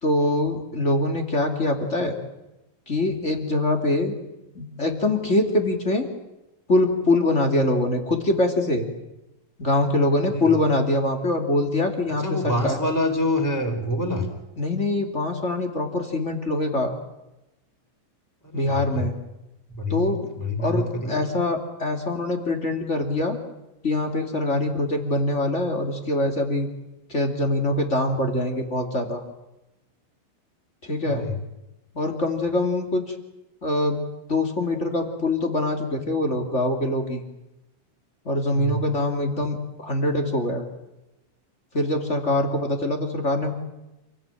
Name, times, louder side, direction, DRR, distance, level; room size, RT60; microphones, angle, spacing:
voice 1, 0.0-2.1 2.8-4.1 4.5-6.1 6.7-8.8 9.6-12.8 14.6-16.9 18.5-19.1 19.9-20.3 20.6-23.4 23.8-26.7 27.1-29.2 30.8-31.2 31.9-33.1 33.6-34.0 34.3-37.2 38.2-40.6 41.7-43.5, left 2 dB, 30° left, 4 dB, 1.4 m, -24 dB
voice 2, 12.2-14.3 18.4-19.1 19.7-20.1 20.4-21.2 31.0-31.3 38.5-38.8, left 1 dB, 5° left, 5 dB, 3.4 m, -26 dB
28.5 x 18.5 x 9.1 m, 0.95 s
omnidirectional pair, 5.8 m